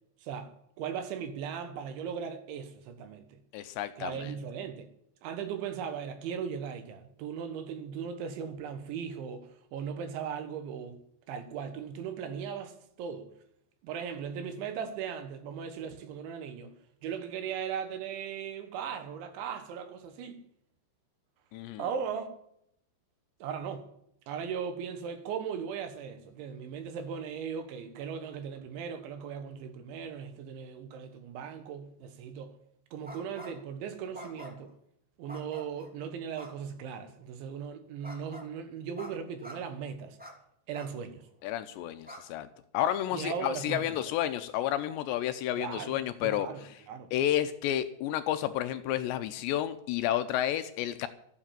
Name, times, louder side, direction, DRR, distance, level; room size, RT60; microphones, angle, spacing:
voice 1, 0.2-0.5 0.8-3.4 4.0-4.9 5.2-11.0 11.3-13.3 13.8-16.7 17.0-20.4 21.8-22.3 23.4-23.9 24.3-32.5 32.9-34.7 35.2-40.2 40.7-41.3 43.1-44.0 45.6-46.0 46.2-47.1, right 7 dB, 75° right, 3.7 m, -38 dB
voice 2, 3.5-4.3 21.5-21.8 41.4-42.5 42.7-46.5 47.1-51.1, left 12 dB, 80° left, 2.8 m, -31 dB
sound 1, 33.0-33.7 34.1-34.7 35.3-35.9 36.3-36.5 38.0-38.5 38.9-39.1 39.4-39.6 40.2-40.3 40.7-40.9 41.4-41.5 42.0-42.2, equal, 5° right, 0.9 m, -46 dB
13.0 x 9.9 x 7.5 m
omnidirectional pair, 5.4 m